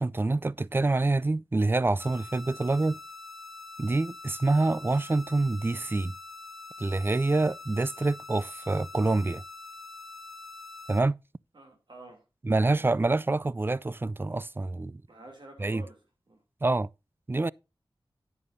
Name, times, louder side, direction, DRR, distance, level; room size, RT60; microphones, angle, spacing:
voice 1, 0.0-3.0 3.8-6.1 6.8-9.4 10.9-11.2 12.5-15.0 15.6-15.8 16.6-16.9 17.3-17.5, right 2 dB, 25° right, 0.4 m, -26 dB
sound 1, 2.0-11.0, left 3 dB, ahead, 1.9 m, -45 dB
voice 2, 11.5-12.2 12.5-12.8 15.1-16.0 16.3-16.4, right 2 dB, 60° right, 3.0 m, -49 dB
10.5 x 9.9 x 2.7 m
wide cardioid pair, 55°, 9 cm